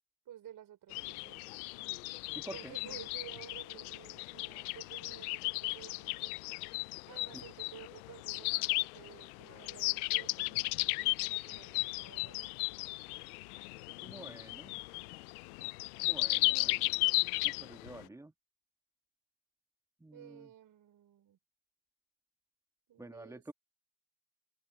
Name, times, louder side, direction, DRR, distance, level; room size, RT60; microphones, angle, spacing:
voice 1, 0.3-1.6 2.5-6.4 7.1-12.4 17.8-18.2 20.1-21.4 22.9-23.4, right 11 dB, 45° right, 5.3 m, -53 dB
sound 1, 0.9-18.0, left 27 dB, 70° left, 0.7 m, -35 dB
voice 2, 2.3-2.7 7.3-7.4 14.0-14.7 16.0-17.0 17.4-18.3 20.0-20.5 23.0-23.5, right 2 dB, 5° right, 2.6 m, -49 dB
open air
hypercardioid pair, 80°, 46 cm